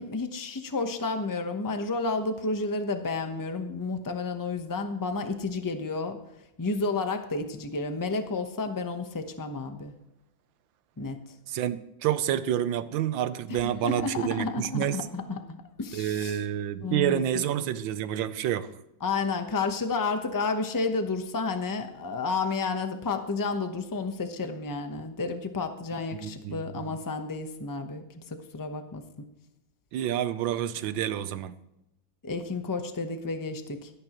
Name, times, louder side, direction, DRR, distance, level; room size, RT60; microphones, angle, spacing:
voice 1, 0.0-6.2 6.6-9.9 11.0-11.2 13.5-16.4 16.8-17.4 19.0-29.0 32.2-33.9, left 3 dB, 25° left, 7 dB, 0.4 m, -31 dB
voice 2, 11.5-15.0 15.9-18.7 26.1-27.0 29.9-31.5, right 11 dB, 90° right, 12 dB, 1.5 m, -29 dB
16.5 x 12.0 x 3.0 m, 0.87 s
omnidirectional pair, 2.0 m